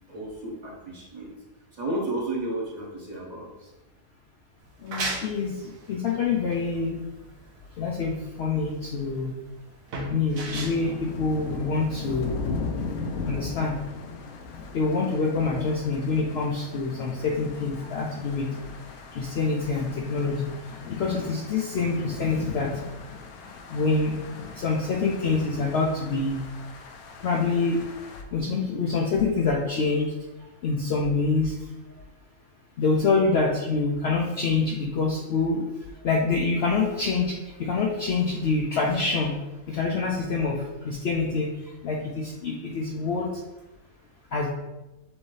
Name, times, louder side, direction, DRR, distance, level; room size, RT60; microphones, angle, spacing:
voice 1, 0.1-1.3 1.8-3.7 31.9-32.0, right 2 dB, 35° right, -5 dB, 1.0 m, -32 dB
sound 1, 4.6-12.0, right 2 dB, 70° right, 1.3 m, -37 dB
voice 2, 4.8-5.5 5.9-7.0 7.8-9.3 10.1-12.3 13.3-13.8 14.7-18.5 19.1-20.5 20.9-22.7 23.7-24.1 24.5-26.4 27.2-27.8 28.3-30.1 30.6-31.5 32.8-35.7 36.0-37.3 37.6-39.4 39.7-40.6 40.8-41.5 41.8-43.3 44.3-44.5, left 4 dB, 65° left, -1 dB, 0.7 m, -26 dB
sound 2, 10.5-28.2, left 4 dB, 85° left, 1.1 m, -38 dB
6.0 x 2.7 x 3.2 m, 1.0 s
omnidirectional pair, 1.5 m